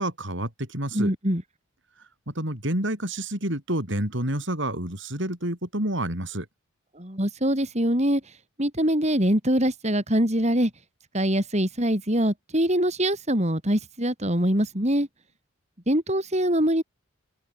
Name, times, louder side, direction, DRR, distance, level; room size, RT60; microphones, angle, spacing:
voice 1, 0.0-1.1 2.3-6.5, right 1 dB, 60° right, 7.9 m, -29 dB
voice 2, 0.9-1.4 6.9-10.7 11.1-15.1 15.9-16.8, equal, 30° right, 5.7 m, -23 dB
head